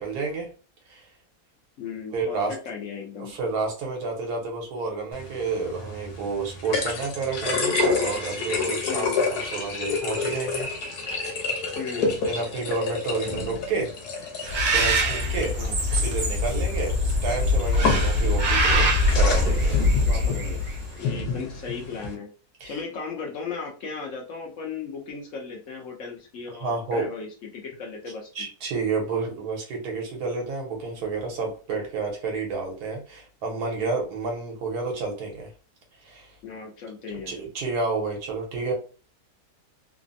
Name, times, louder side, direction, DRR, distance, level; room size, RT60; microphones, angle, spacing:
voice 1, 0.0-0.5 0.9-1.1 2.1-2.5 3.2-9.1 9.3-10.7 12.0-13.9 14.3-15.5 15.9-19.8 20.1-20.4 22.6-22.8 26.6-27.1 28.3-35.5 36.0-36.3 37.1-38.7, right 4 dB, 80° right, 1 dB, 1.4 m, -30 dB
voice 2, 1.8-3.3 8.9-9.2 11.8-12.1 15.5-15.8 20.1-20.6 21.0-22.3 22.6-28.3 36.4-37.3, left 5 dB, 60° left, 0 dB, 0.9 m, -36 dB
sound 1, 5.1-22.1, left 4 dB, 80° left, 1.3 m, -30 dB
Bird, 14.4-20.8, left 1 dB, 65° right, 1.1 m, -22 dB
3.3 x 2.1 x 2.5 m, 0.36 s
omnidirectional pair, 1.6 m